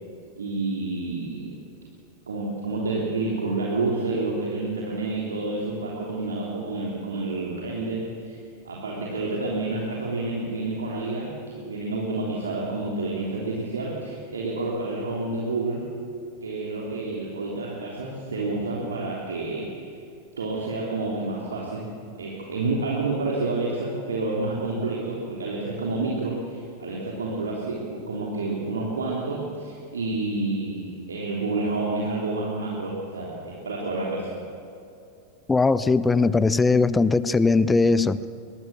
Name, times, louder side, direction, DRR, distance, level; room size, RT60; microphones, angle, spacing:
voice 1, 0.4-1.6 2.3-8.4 8.6-15.9 16.4-19.7 20.4-21.9 22.2-34.3, right 3 dB, 70° right, -3 dB, 3.2 m, -29 dB
voice 2, 35.5-38.3, left 3 dB, 10° left, 17 dB, 0.6 m, -20 dB
22.0 x 22.0 x 7.1 m, 2.5 s
figure-of-eight pair, 90°, 0 cm